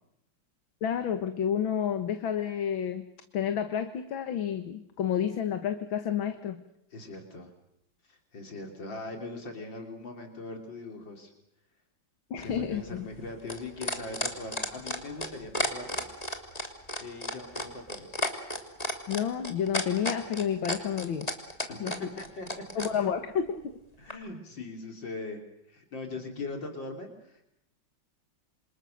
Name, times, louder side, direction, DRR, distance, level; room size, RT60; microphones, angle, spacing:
voice 1, 0.8-3.0 3.3-6.6 12.3-13.1 19.1-21.3 21.8-22.0 22.8-23.6, left 8 dB, 90° left, 8 dB, 2.2 m, -30 dB
voice 2, 6.9-7.5 8.1-11.3 12.4-16.0 17.0-18.2 21.7-22.6 23.0-23.1 24.0-25.4 25.7-27.4, left 2 dB, 70° left, 3 dB, 3.9 m, -41 dB
sound 1, 12.4-22.9 24.1-24.2, left 1 dB, 20° left, 3.1 m, -32 dB
28.0 x 26.5 x 6.6 m, 0.80 s
omnidirectional pair, 2.1 m